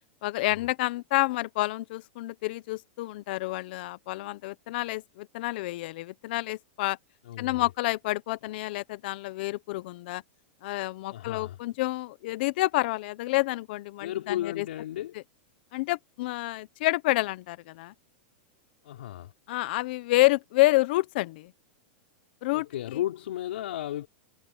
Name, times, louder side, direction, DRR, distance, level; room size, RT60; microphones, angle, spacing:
voice 1, 0.2-7.0 7.4-10.2 10.6-14.7 15.7-17.9 19.5-21.5 22.4-22.7 22.9-23.0, left 19 dB, 60° left, 1.2 m, -28 dB
voice 2, 7.3-7.7 11.1-11.6 14.0-15.1 18.8-19.3 22.5-24.1, left 13 dB, 75° left, 5.3 m, -34 dB
supercardioid pair, 140°, 6 cm